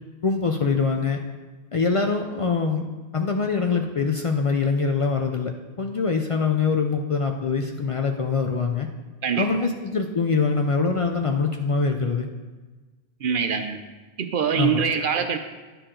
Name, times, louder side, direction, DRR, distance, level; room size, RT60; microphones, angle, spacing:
voice 1, 0.2-1.2 1.7-2.9 3.1-5.5 5.8-8.9 9.4-12.3 14.6-14.8, left 4 dB, 60° left, 4 dB, 0.3 m, -23 dB
voice 2, 13.2-13.8 14.2-15.4, right 7 dB, 60° right, 7 dB, 0.6 m, -24 dB
10.5 x 4.6 x 3.7 m, 1.3 s
omnidirectional pair, 1.1 m